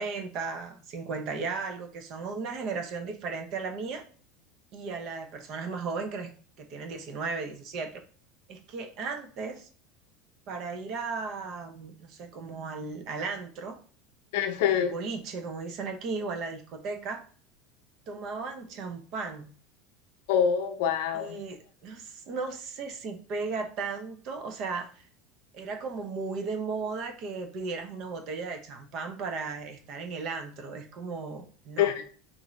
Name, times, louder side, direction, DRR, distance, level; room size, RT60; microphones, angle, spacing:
voice 1, 0.0-4.0 4.7-6.3 6.6-8.0 8.5-9.7 10.5-13.8 14.7-17.2 18.1-19.5 21.1-25.0 25.5-31.9, right 4 dB, 50° right, 6 dB, 0.7 m, -35 dB
voice 2, 14.3-14.9 20.3-21.3 31.8-32.0, left 8 dB, 75° left, 7 dB, 0.7 m, -25 dB
3.6 x 2.6 x 3.1 m, 0.42 s
supercardioid pair, 130°, 0 cm